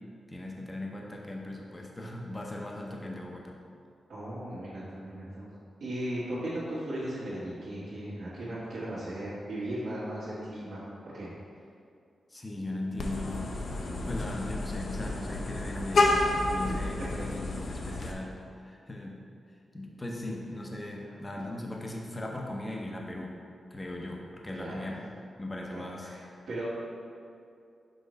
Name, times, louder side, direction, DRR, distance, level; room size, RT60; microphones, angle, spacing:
voice 1, 0.3-3.5 12.3-13.6 14.1-19.2 19.7-23.4 23.7-25.0 25.4-26.1, left 1 dB, 20° left, -1 dB, 0.6 m, -38 dB
voice 2, 4.1-5.5 5.8-11.3 17.0-17.3 21.0-21.2 24.5-24.9 25.7-26.7, right 1 dB, 85° right, -11 dB, 1.5 m, -37 dB
Vehicle horn car horn honking, 13.0-18.1, left 2 dB, 65° left, 0.6 m, -30 dB
6.1 x 3.1 x 5.1 m, 2.5 s
wide cardioid pair, 130°, 0 cm